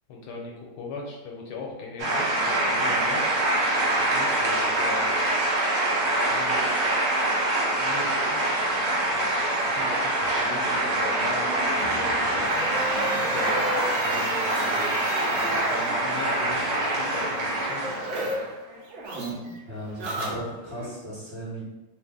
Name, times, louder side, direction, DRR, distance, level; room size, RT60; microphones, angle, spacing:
voice 1, 0.1-3.3 4.0-5.2 6.2-6.8 7.8-8.2 9.7-12.7 13.2-15.0 15.3-18.4, left 3 dB, 75° left, -1 dB, 1.1 m, -39 dB
sound 1, 2.0-18.5, right 1 dB, 80° right, 1.5 m, -25 dB
sound 2, 11.7-18.3 18.6-20.9, right 1 dB, 60° right, 0.8 m, -35 dB
voice 2, 19.7-21.6, right 1 dB, 45° right, -8 dB, 1.1 m, -36 dB
2.8 x 2.6 x 3.5 m, 1.1 s
omnidirectional pair, 1.9 m